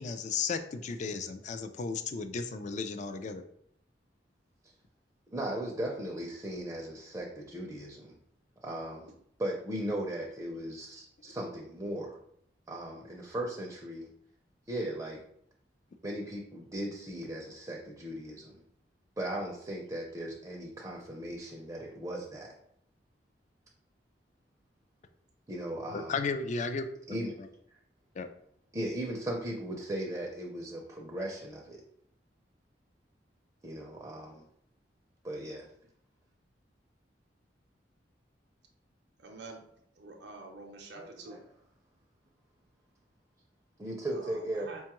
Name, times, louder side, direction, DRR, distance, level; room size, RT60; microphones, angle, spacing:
voice 1, 0.0-3.4 25.9-27.3 28.2-28.3, left 4 dB, 45° left, 8 dB, 0.3 m, -34 dB
voice 2, 5.3-8.2 8.6-9.1 9.4-12.2 12.7-14.1 14.7-15.2 16.0-18.5 19.2-22.5 25.5-26.2 27.1-27.4 28.7-31.8 33.6-34.4 35.2-35.7 40.9-41.4 43.8-44.7, right 1 dB, 20° right, -1 dB, 0.5 m, -37 dB
voice 3, 39.2-39.6 40.0-41.4 44.1-44.8, right 3 dB, 70° right, 2 dB, 0.6 m, -47 dB
5.1 x 2.3 x 2.9 m, 0.70 s
head